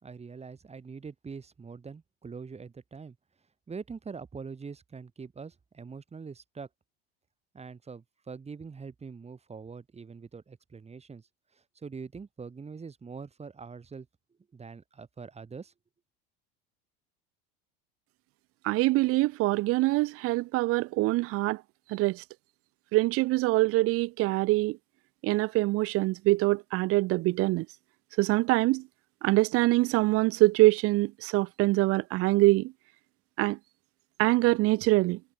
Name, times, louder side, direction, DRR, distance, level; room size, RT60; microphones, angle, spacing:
voice 1, 0.0-3.2 3.7-6.7 7.5-11.3 11.5-14.1 14.5-15.7, right 5 dB, 20° right, 4.2 m, -43 dB
voice 2, 18.6-21.6 21.9-22.2 22.9-24.8 25.2-27.7 28.2-28.8 29.2-32.7 33.4-33.6 34.2-35.2, right 20 dB, 50° right, 0.5 m, -24 dB
supercardioid pair, 110°, 31 cm